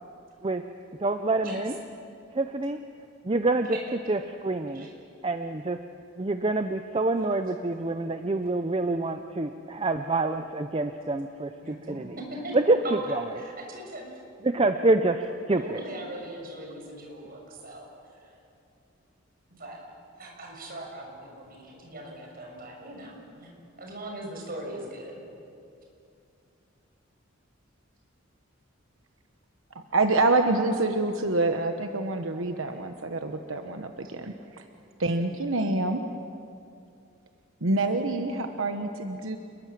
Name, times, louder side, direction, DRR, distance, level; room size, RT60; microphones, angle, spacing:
voice 1, 1.0-1.7 2.3-2.8 3.2-3.8 4.1-4.9 5.2-5.8 6.2-12.1 12.5-12.8 13.1-13.2 14.4-15.8, right 2 dB, 30° right, 7 dB, 0.7 m, -26 dB
voice 2, 11.6-12.6 12.8-14.2 15.5-18.4 19.5-19.8 20.2-23.5 23.8-25.2, right 1 dB, 50° right, 0 dB, 6.9 m, -40 dB
voice 3, 29.7-34.6 35.0-36.0 37.6-39.4, right 2 dB, 85° right, 6 dB, 1.2 m, -26 dB
28.5 x 21.5 x 7.6 m, 2.6 s
head